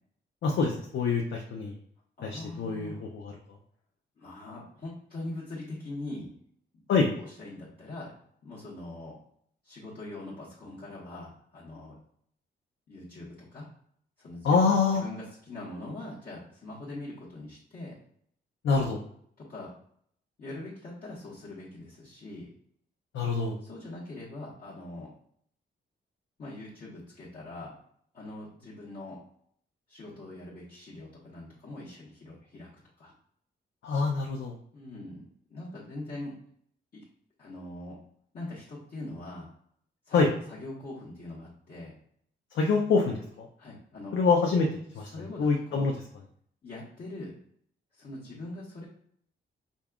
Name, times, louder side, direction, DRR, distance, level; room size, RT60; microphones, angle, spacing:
voice 1, 0.4-1.7 2.2-3.3 6.9-7.1 14.4-15.0 18.6-19.0 23.1-23.6 33.8-34.5 40.1-40.3 42.5-43.5 44.1-44.7 44.9-45.1 45.4-45.9, left 4 dB, 75° left, 0 dB, 0.6 m, -25 dB
voice 2, 2.2-3.1 4.2-6.3 6.9-8.1 8.4-9.2 9.6-11.9 12.9-13.7 14.2-14.6 14.9-18.0 19.4-19.7 20.4-22.5 23.6-25.1 26.4-27.7 28.1-29.2 29.9-32.7 33.0-33.1 34.7-35.2 35.5-36.4 36.9-37.0 37.4-38.0 38.3-39.5 40.1-41.9 43.6-44.2 45.0-45.8 46.6-47.3 47.9-48.8, left 2 dB, 50° left, -9 dB, 1.2 m, -42 dB
5.2 x 2.4 x 2.3 m, 0.65 s
cardioid pair, 110°, 20 cm